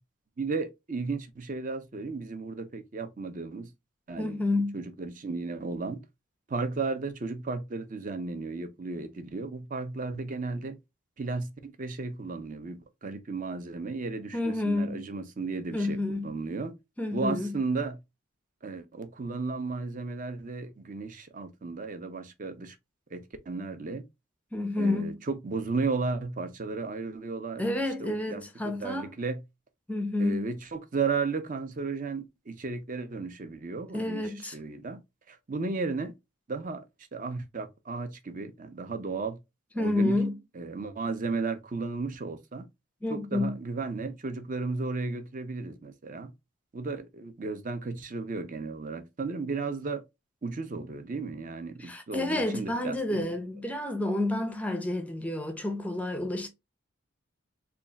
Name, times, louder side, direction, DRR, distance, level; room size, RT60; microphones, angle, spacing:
voice 1, 0.4-3.7 4.1-4.4 4.7-6.0 6.5-10.8 11.2-16.0 16.2-16.7 17.1-18.0 18.6-22.8 23.1-24.0 24.8-27.6 28.0-29.4 30.2-34.2 34.5-35.0 35.3-36.1 36.5-36.8 37.1-39.4 39.8-40.2 40.6-42.7 43.1-46.3 46.7-50.0 50.4-53.2, right 4 dB, 40° right, 0.6 m, -34 dB
voice 2, 4.2-4.8 14.3-15.1 15.7-16.3 17.0-17.6 24.5-25.2 27.6-29.1 29.9-30.5 33.9-34.6 39.8-40.4 43.0-43.6 51.8-56.5, left 2 dB, 5° left, 0.5 m, -29 dB
3.3 x 2.4 x 3.9 m
head